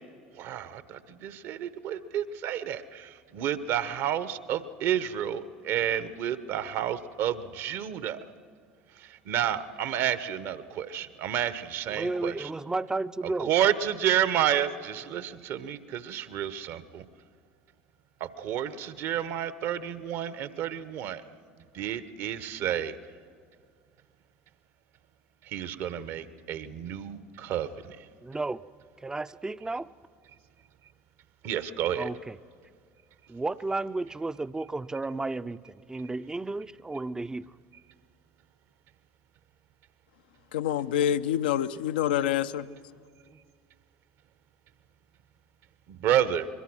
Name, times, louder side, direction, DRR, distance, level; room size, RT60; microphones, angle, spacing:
voice 1, 0.3-8.2 9.0-12.5 13.4-17.0 18.2-21.2 21.7-23.0 25.5-28.0 31.4-32.1 45.9-46.5, right 10 dB, 55° right, 14 dB, 1.1 m, -30 dB
voice 2, 11.9-13.5 28.2-28.6 29.0-29.9 31.9-32.4 33.3-37.5, right 2 dB, 15° right, 15 dB, 0.5 m, -33 dB
voice 3, 40.5-42.7, left 10 dB, 75° left, 12 dB, 0.6 m, -26 dB
24.0 x 22.0 x 6.2 m, 2.1 s
hypercardioid pair, 70°, 5 cm